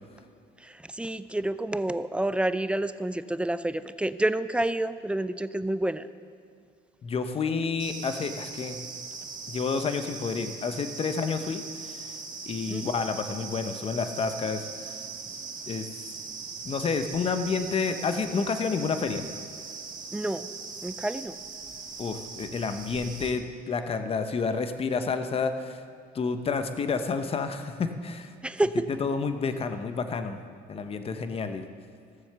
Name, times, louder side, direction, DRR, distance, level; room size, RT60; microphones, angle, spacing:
voice 1, 0.6-6.1 12.7-12.9 20.1-20.5 20.8-21.4 28.4-28.7, right 1 dB, 5° right, 13 dB, 0.4 m, -29 dB
voice 2, 7.0-8.8 9.5-12.1 12.5-14.6 15.7-15.8 16.6-19.2 22.0-25.8 26.1-28.3 29.0-30.4 30.7-31.7, left 5 dB, 35° left, 9 dB, 0.9 m, -29 dB
sound 1, 7.8-23.3, right 4 dB, 50° right, 1.7 m, -40 dB
16.0 x 7.1 x 6.8 m, 2.4 s
cardioid pair, 110°, 17 cm